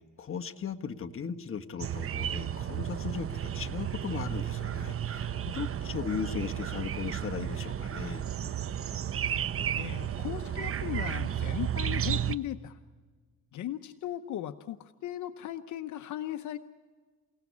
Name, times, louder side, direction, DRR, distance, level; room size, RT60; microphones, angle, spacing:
voice 1, 0.0-8.2, left 6 dB, 45° left, 5 dB, 1.5 m, -37 dB
sound 1, 1.8-12.3, right 10 dB, 45° right, 0.9 m, -33 dB
voice 2, 9.8-12.8 13.5-16.6, left 12 dB, 75° left, 9 dB, 0.9 m, -37 dB
29.0 x 17.5 x 8.4 m, 1.5 s
cardioid pair, 90°, 30 cm